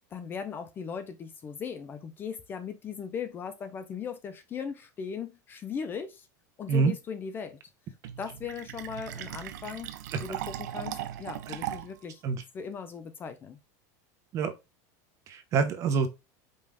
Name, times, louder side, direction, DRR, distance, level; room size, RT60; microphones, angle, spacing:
voice 1, 0.1-6.3 6.6-7.6 8.2-9.9 10.2-12.2 12.5-13.6, left 6 dB, 20° left, 0.5 m, -38 dB
Fill (with liquid), 8.0-12.0, right 12 dB, 85° right, 0.5 m, -38 dB
voice 2, 15.3-16.1, right 5 dB, 35° right, 0.7 m, -26 dB
5.3 x 2.5 x 3.4 m
supercardioid pair, 150°, 9 cm